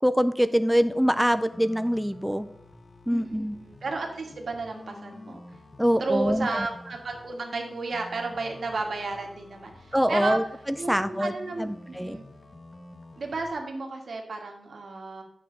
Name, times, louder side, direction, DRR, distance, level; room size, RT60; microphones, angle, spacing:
voice 1, 0.0-2.5 3.1-3.6 5.8-6.7 9.9-10.4 10.9-12.2, equal, ahead, 10 dB, 0.3 m, -24 dB
sound 1, 0.7-13.5, left 2 dB, 45° left, 0.8 m, -48 dB
voice 2, 3.1-5.4 6.0-10.4 10.8-12.2 13.2-15.2, right 3 dB, 80° right, 2 dB, 1.6 m, -33 dB
8.7 x 6.5 x 3.8 m, 0.75 s
wide cardioid pair, 100°, 0 cm